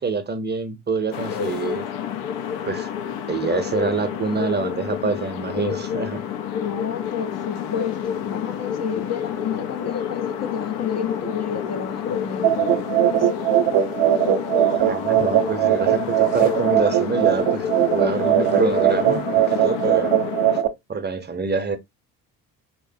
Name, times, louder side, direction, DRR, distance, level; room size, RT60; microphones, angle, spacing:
voice 1, 0.0-1.9 2.6-2.9 3.3-6.2 14.7-17.6 17.9-20.2 20.9-21.8, right 4 dB, 25° right, 0.7 m, -26 dB
sound 1, 1.1-20.6, left 8 dB, 70° left, 0.7 m, -29 dB
voice 2, 6.5-13.3, left 7 dB, 35° left, 0.6 m, -31 dB
sound 2, 12.4-20.7, right 12 dB, 55° right, 0.7 m, -20 dB
3.8 x 3.0 x 2.6 m
hypercardioid pair, 60°, 44 cm